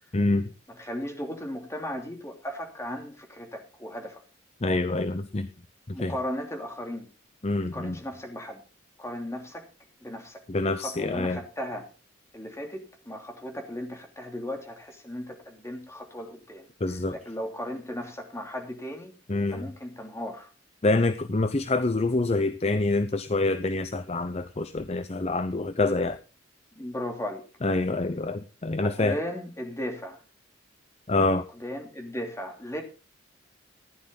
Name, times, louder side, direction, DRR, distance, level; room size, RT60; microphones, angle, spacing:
voice 1, 0.1-0.5 4.6-5.5 5.9-6.2 7.4-8.0 10.5-11.4 16.8-17.1 19.3-19.7 20.8-26.2 27.6-29.2 31.1-31.4, left 2 dB, 35° left, 12 dB, 0.7 m, -26 dB
voice 2, 0.8-4.2 5.9-7.1 7.7-8.6 9.0-9.6 10.0-10.4 10.8-11.9 12.3-16.7 17.1-19.1 19.5-20.5 26.7-27.4 28.8-30.2 31.6-32.8, equal, 15° left, 3 dB, 3.0 m, -36 dB
15.0 x 11.0 x 4.0 m, 0.33 s
head